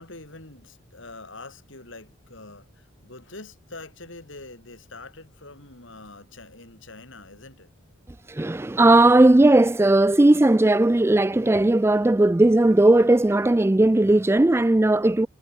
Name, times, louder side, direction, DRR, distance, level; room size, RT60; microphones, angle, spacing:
voice 1, 0.0-7.7, left 2 dB, 65° left, 4.0 m, -44 dB
voice 2, 8.3-15.3, right 2 dB, 10° right, 0.3 m, -17 dB
head